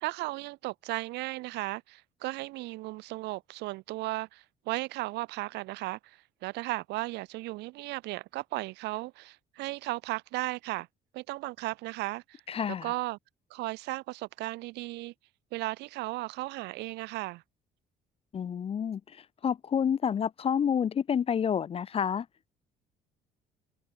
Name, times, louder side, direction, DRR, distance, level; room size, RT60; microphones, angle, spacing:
voice 1, 0.0-10.9 11.1-12.4 12.8-13.2 13.5-15.1 15.5-17.4, right 20 dB, 90° right, 2.0 m, -35 dB
voice 2, 12.5-12.9 18.3-22.3, left 8 dB, 35° left, 0.6 m, -29 dB
cardioid pair, 110°, 17 cm